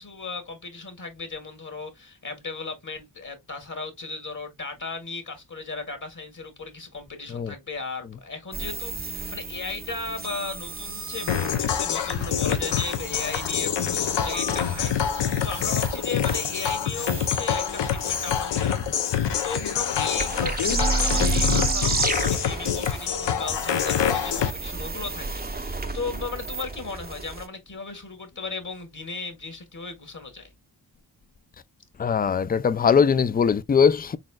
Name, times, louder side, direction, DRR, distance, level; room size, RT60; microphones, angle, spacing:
voice 1, 0.0-30.5, left 4 dB, 45° left, 1.4 m, -36 dB
sound 1, 8.5-27.4, right 3 dB, 20° right, 0.7 m, -32 dB
sound 2, 11.3-24.5, left 8 dB, 75° left, 0.8 m, -26 dB
voice 2, 32.0-34.2, left 6 dB, 25° left, 0.4 m, -20 dB
4.2 x 3.7 x 2.3 m
cardioid pair, 60°, 43 cm